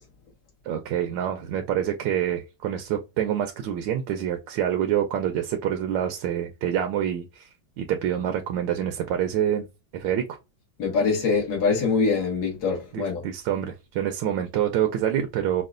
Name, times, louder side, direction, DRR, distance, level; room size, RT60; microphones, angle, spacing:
voice 1, 0.6-7.5 7.8-9.7 9.9-10.2 12.9-15.6, right 10 dB, 80° right, 1.3 m, -26 dB
voice 2, 10.8-13.2, left 4 dB, 60° left, 2.0 m, -24 dB
5.6 x 2.3 x 2.5 m
omnidirectional pair, 2.0 m